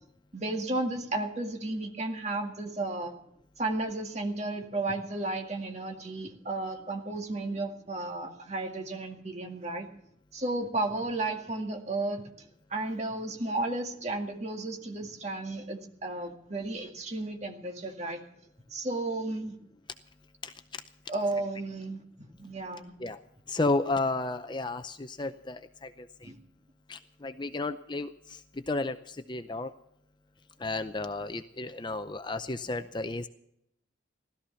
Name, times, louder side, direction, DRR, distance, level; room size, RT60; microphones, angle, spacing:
voice 1, 0.3-3.1 3.6-9.9 10.3-12.2 12.7-18.2 18.7-19.6 21.1-22.9 26.2-26.4, right 2 dB, 35° right, 3 dB, 2.0 m, -33 dB
voice 2, 20.4-20.8 23.0-23.2 23.5-26.3 26.9-29.7 30.6-33.3, left 2 dB, 25° left, 10 dB, 0.5 m, -33 dB
16.5 x 13.5 x 5.7 m, 0.75 s
head